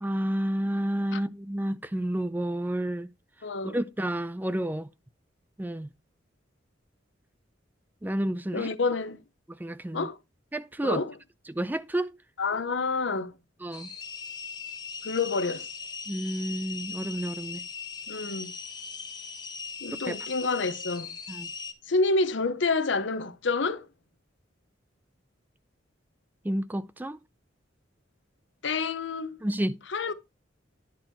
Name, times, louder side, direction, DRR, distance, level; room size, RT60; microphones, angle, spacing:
voice 1, 0.0-3.1 3.6-4.9 5.6-5.9 8.0-8.7 9.5-10.1 10.5-11.0 11.5-12.1 13.6-13.9 16.1-17.6 20.0-20.2 21.3-21.5 26.4-27.2 29.4-29.8, right 1 dB, 10° right, 0.4 m, -30 dB
voice 2, 3.4-3.8 8.5-9.2 9.9-10.2 10.8-11.1 12.4-13.3 15.0-15.7 18.1-18.5 19.8-21.1 21.9-23.9 28.6-29.4 29.9-30.1, left 3 dB, 70° left, 0.8 m, -28 dB
sound 1, 13.7-21.7, left 5 dB, 20° left, 1.4 m, -39 dB
11.0 x 4.5 x 4.5 m
head